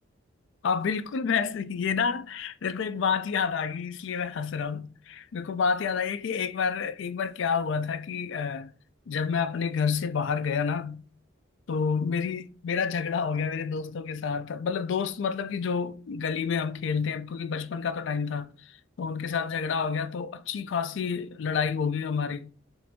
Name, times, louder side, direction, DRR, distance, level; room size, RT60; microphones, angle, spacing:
voice 1, 0.6-8.7 9.1-11.1 11.7-22.5, left 6 dB, 60° left, 0.3 m, -29 dB
4.9 x 2.6 x 3.5 m
head